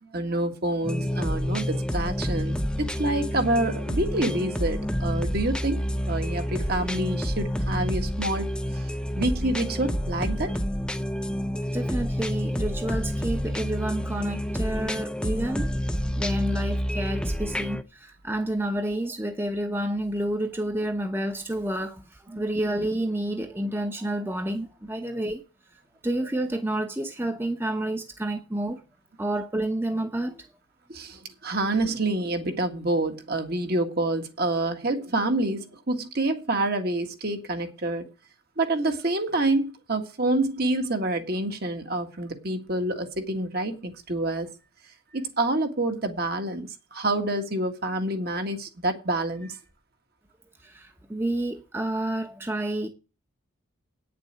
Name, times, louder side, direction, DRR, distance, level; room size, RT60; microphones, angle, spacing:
voice 1, 0.0-8.9 9.2-10.5 22.3-22.4 25.0-25.1 30.9-38.0 38.6-44.5 45.1-49.6, right 2 dB, 50° right, 1.7 m, -27 dB
sound 1, 0.8-17.8, equal, 5° left, 0.6 m, -29 dB
voice 2, 11.7-15.7 16.2-25.4 26.0-28.8 29.2-30.5 50.6-52.9, right 1 dB, 10° right, 0.9 m, -29 dB
9.3 x 6.9 x 7.5 m
head